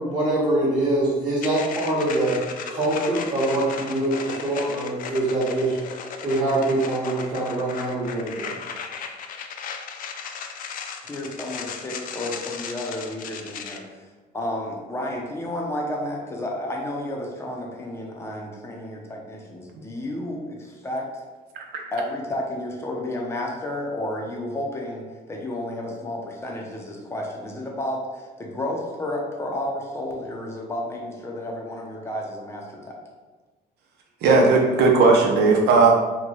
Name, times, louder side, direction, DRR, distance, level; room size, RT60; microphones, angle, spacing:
voice 1, 0.0-2.4 2.7-5.8 6.2-8.6, right 2 dB, 30° right, -9 dB, 1.0 m, -24 dB
sound 1, 1.4-13.8, left 6 dB, 55° left, 0.4 m, -36 dB
voice 2, 11.0-14.0 14.3-21.2 21.9-32.9, left 1 dB, 15° left, -1 dB, 0.6 m, -31 dB
voice 3, 34.2-35.9, right 3 dB, 75° right, 1 dB, 0.7 m, -16 dB
3.0 x 2.2 x 4.0 m, 1.3 s
cardioid pair, 110°, 17 cm